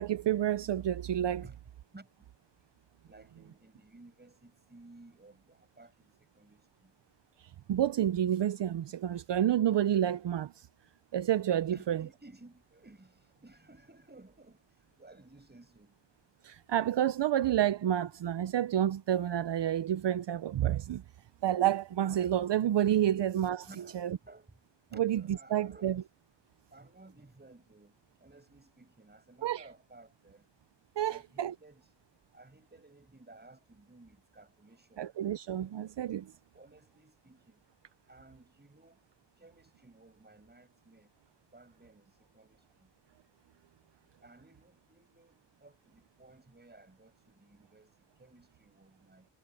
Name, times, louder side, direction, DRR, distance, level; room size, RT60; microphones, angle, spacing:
voice 1, 0.0-1.4 7.7-10.7 11.1-12.0 16.4-21.0 21.4-23.7 23.9-24.2 25.0-25.2 25.5-26.0 29.4-29.6 31.0-31.5 35.0-36.3, right 11 dB, 70° right, 0.6 m, -29 dB
voice 2, 1.9-2.3 3.0-6.9 11.7-16.0 23.6-24.6 24.9-26.0 26.7-30.5 31.0-31.9 32.3-35.1 36.5-37.6 38.1-39.0 39.4-41.1 41.5-42.9 44.2-49.3, right 2 dB, 20° right, 6.7 m, -57 dB
wide cardioid pair, 110°, 44 cm